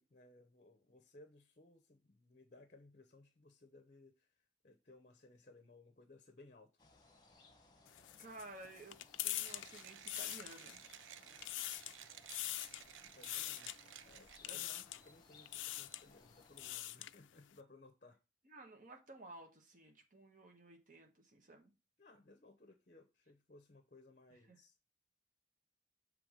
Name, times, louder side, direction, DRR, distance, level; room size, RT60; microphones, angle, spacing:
voice 1, 0.0-6.8 13.0-13.7 14.0-14.6 15.0-18.2 22.0-24.8, left 2 dB, 40° left, 0.7 m, -62 dB
sound 1, 6.8-16.8, left 2 dB, 20° left, 1.1 m, -66 dB
sound 2, 7.9-10.9 11.3-12.0 12.3-12.9 13.2-13.8 14.4-15.1 15.5-16.0 16.4-17.2, left 15 dB, 80° left, 0.4 m, -43 dB
voice 2, 8.2-10.8 14.4-14.8 18.4-21.7 24.5-24.6, right 2 dB, 45° right, 1.3 m, -55 dB
Mechanisms, 9.4-14.7, right 10 dB, 85° right, 0.4 m, -56 dB
6.8 x 3.4 x 5.0 m
head